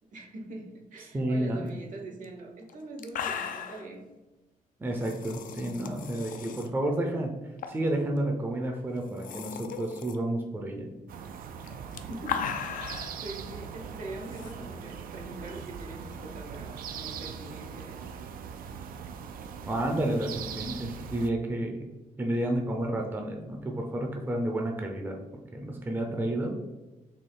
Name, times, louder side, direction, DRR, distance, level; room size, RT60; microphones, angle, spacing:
voice 1, 0.0-4.1 12.0-18.1, right 2 dB, 65° right, 2 dB, 0.9 m, -43 dB
voice 2, 1.1-1.7 4.8-7.3 7.7-10.9 19.6-21.9 22.2-25.2 25.5-26.5, right 1 dB, 15° right, 2 dB, 0.5 m, -30 dB
sound 1, 2.2-2.3 2.7-2.8 3.0-3.9 4.9-6.7 7.6-7.9 8.2-8.3 9.0-10.2 11.6-13.2 14.3-14.5, left 7 dB, 70° left, 0.4 m, -37 dB
sound 2, 11.1-21.3, right 7 dB, 90° right, 0.4 m, -41 dB
4.3 x 2.8 x 3.7 m, 1.1 s
wide cardioid pair, 150°, 14 cm